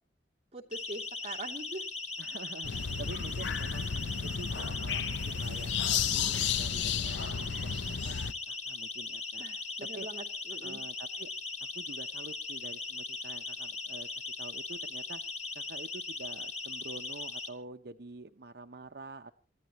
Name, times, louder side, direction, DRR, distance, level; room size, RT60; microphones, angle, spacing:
voice 1, 0.5-1.8 9.4-10.8, right 2 dB, 35° right, 0 dB, 2.7 m, -43 dB
Siren, 0.7-17.5, left 3 dB, 40° left, 2.1 m, -39 dB
voice 2, 2.2-3.9 4.2-8.1 8.5-9.5 9.9-10.1 10.6-11.3 11.6-14.1 14.4-15.2 15.5-19.3, right 3 dB, 60° right, 7 dB, 0.8 m, -47 dB
sound 1, 2.6-8.3, left 7 dB, 85° left, 0.7 m, -33 dB
28.5 x 14.0 x 3.0 m, 0.37 s
head